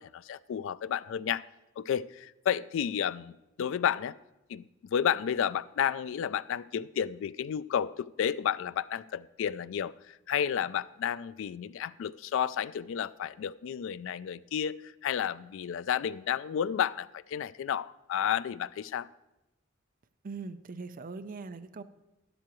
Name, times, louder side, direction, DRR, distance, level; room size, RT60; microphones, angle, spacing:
voice 1, 0.0-1.4 1.8-3.3 3.6-4.2 4.5-4.6 4.9-19.1, left 8 dB, 65° left, 18 dB, 0.3 m, -31 dB
voice 2, 20.2-21.8, right 4 dB, 45° right, 10 dB, 0.5 m, -41 dB
12.0 x 11.5 x 3.0 m, 0.94 s
head